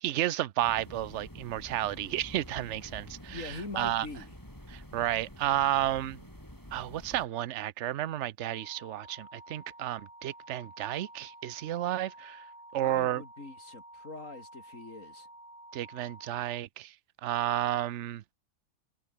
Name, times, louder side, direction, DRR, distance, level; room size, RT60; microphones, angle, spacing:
voice 1, 0.0-4.1 4.7-6.3 6.7-12.4 12.7-13.2 15.7-16.9 17.2-18.2, right 13 dB, 60° right, 0.9 m, -32 dB
sound 1, 0.6-7.3, equal, 10° left, 6.6 m, -48 dB
voice 2, 3.3-4.3 12.8-15.3, left 3 dB, 55° left, 4.7 m, -42 dB
sound 2, 8.5-16.6, right 1 dB, 35° right, 6.8 m, -51 dB
omnidirectional pair, 1.6 m